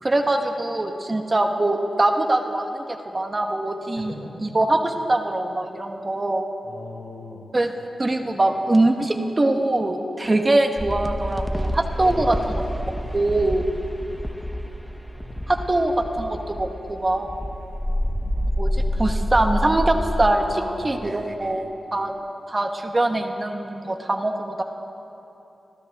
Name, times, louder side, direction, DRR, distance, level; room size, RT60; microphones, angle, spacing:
voice 1, 0.0-2.8 3.1-4.1 4.4-6.5 7.5-7.7 8.0-12.5 13.1-13.7 15.5-17.3 18.6-21.7 21.9-22.1 22.5-24.6, right 2 dB, 25° right, 3 dB, 1.3 m, -23 dB
voice 2, 4.0-4.3 6.7-7.4 11.9-12.3 15.1-15.4 20.4-21.4, left 2 dB, 60° left, -3 dB, 6.0 m, -38 dB
sound 1, 10.8-20.3, equal, 5° left, 1.0 m, -28 dB
29.5 x 26.0 x 3.6 m, 2.9 s
wide cardioid pair, 135°, 0 cm